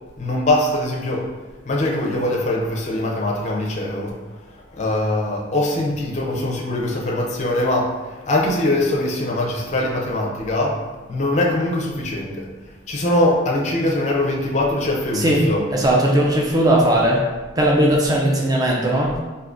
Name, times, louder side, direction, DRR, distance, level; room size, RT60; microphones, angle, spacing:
voice 1, 0.2-1.3 1.7-4.2 4.7-10.8 11.1-12.5 12.9-15.6, left 1 dB, 35° left, -2 dB, 0.5 m, -22 dB
voice 2, 15.1-15.5 15.7-17.2 17.6-19.2, right 1 dB, 20° right, -2 dB, 0.4 m, -18 dB
3.6 x 2.6 x 2.5 m, 1.3 s
head